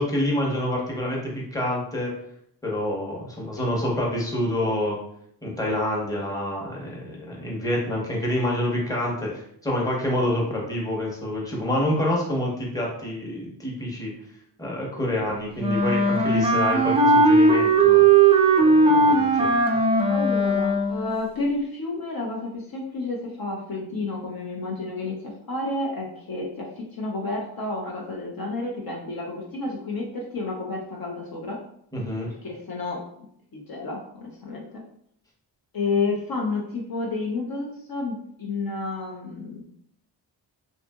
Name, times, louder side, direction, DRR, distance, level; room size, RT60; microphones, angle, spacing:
voice 1, 0.0-2.1 2.6-5.0 5.4-14.1 14.6-18.1 18.6-19.5 31.9-32.3, left 1 dB, 10° left, -3 dB, 0.9 m, -27 dB
Wind instrument woodwind instrument, 15.6-21.1, right 3 dB, 15° right, 0.4 m, -18 dB
voice 2, 20.1-31.6 32.3-33.3 33.5-34.8 35.7-39.6, left 3 dB, 50° left, -2 dB, 0.7 m, -30 dB
2.7 x 2.4 x 2.2 m, 0.69 s
cardioid pair, 55°, 46 cm